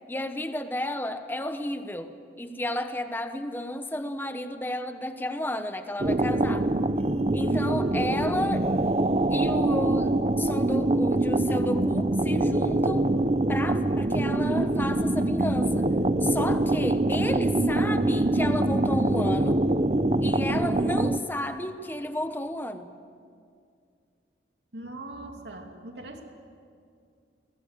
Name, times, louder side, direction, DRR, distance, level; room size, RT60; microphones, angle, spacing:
voice 1, 0.1-6.7 7.3-8.7 9.3-13.1 13.5-15.9 16.2-19.7 20.2-22.9, left 1 dB, 10° left, 8 dB, 1.0 m, -32 dB
sound 1, 6.0-21.2, right 2 dB, 35° right, 0.6 m, -24 dB
voice 2, 24.7-26.2, right 2 dB, 80° right, 3 dB, 2.8 m, -41 dB
22.0 x 19.0 x 8.3 m, 2.3 s
head